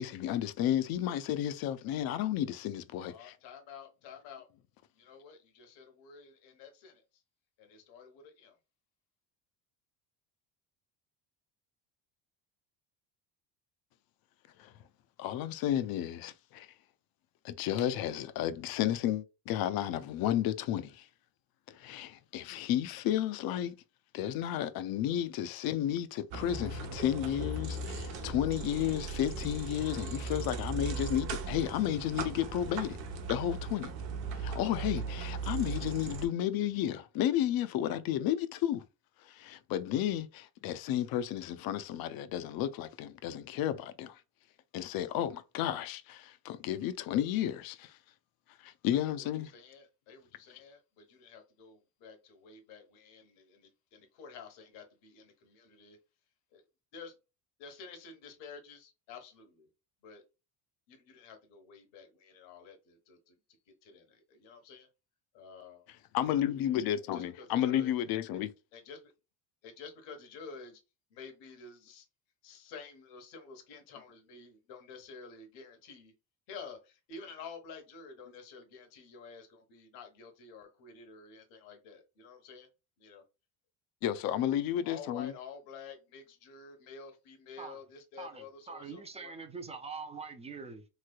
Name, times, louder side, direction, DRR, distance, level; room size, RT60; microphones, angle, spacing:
voice 1, 0.0-3.3 14.6-14.7 15.2-16.7 17.4-21.1 21.7-23.8 24.1-33.0 33.3-33.9 34.3-38.8 39.3-44.2 44.7-47.9 48.6-49.5 66.1-68.5 84.0-85.3, left 11 dB, 55° left, 0.5 m, -32 dB
voice 2, 3.0-4.5 4.9-7.2 7.6-8.6 48.9-56.0 56.5-56.6 56.9-57.1 57.6-59.7 60.0-60.2 60.9-63.4 63.8-64.9 65.3-65.9 67.1-67.9 68.3-68.4 68.7-69.1 69.6-70.8 71.1-72.0 72.4-76.1 76.5-82.7 83.0-83.2 84.8-89.3, left 5 dB, 85° left, 1.2 m, -50 dB
sound 1, 26.3-36.3, right 4 dB, 75° right, 1.0 m, -38 dB
voice 3, 88.2-90.9, right 4 dB, 15° right, 0.4 m, -44 dB
3.2 x 3.2 x 2.2 m
cardioid pair, 125°, 43 cm